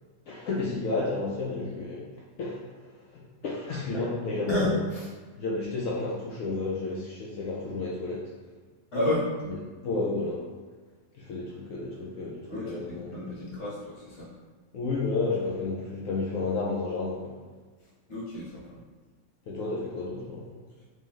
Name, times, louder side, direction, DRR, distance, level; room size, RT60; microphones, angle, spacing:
voice 1, 0.3-2.1 2.4-4.8 5.4-8.3 9.5-9.6 9.8-10.4 11.1-13.1 14.7-17.4 19.5-20.6, left 3 dB, 70° left, -4 dB, 0.8 m, -31 dB
voice 2, 4.5-5.1 8.9-9.3 12.5-14.3 17.8-18.8, left 1 dB, 45° left, -9 dB, 1.3 m, -31 dB
3.1 x 2.9 x 3.9 m, 1.4 s
omnidirectional pair, 1.9 m